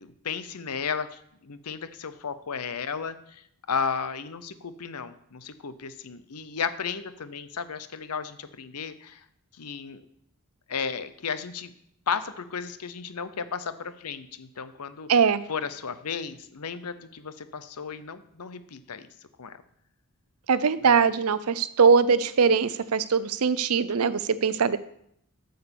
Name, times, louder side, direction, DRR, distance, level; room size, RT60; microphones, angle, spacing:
voice 1, 0.0-3.4 3.7-9.2 9.6-10.0 10.7-11.7 12.1-15.1 15.5-19.1 19.4-19.6 20.8-21.1, left 6 dB, 90° left, 13 dB, 0.8 m, -34 dB
voice 2, 15.1-15.4 20.5-24.8, right 5 dB, 75° right, 15 dB, 0.6 m, -21 dB
8.7 x 6.6 x 7.0 m, 0.72 s
head